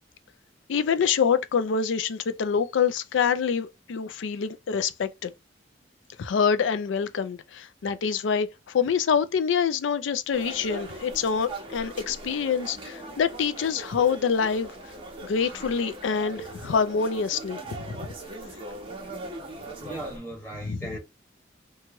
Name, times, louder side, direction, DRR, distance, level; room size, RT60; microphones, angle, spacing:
voice 1, 0.7-5.3 6.2-14.7 15.2-18.0 20.6-21.0, left 6 dB, 75° left, 0.4 m, -26 dB
sound 1, 10.3-20.2, right 2 dB, 30° right, 0.8 m, -40 dB
voice 2, 19.8-21.0, right 1 dB, 10° left, 1.3 m, -37 dB
3.0 x 2.3 x 2.8 m
head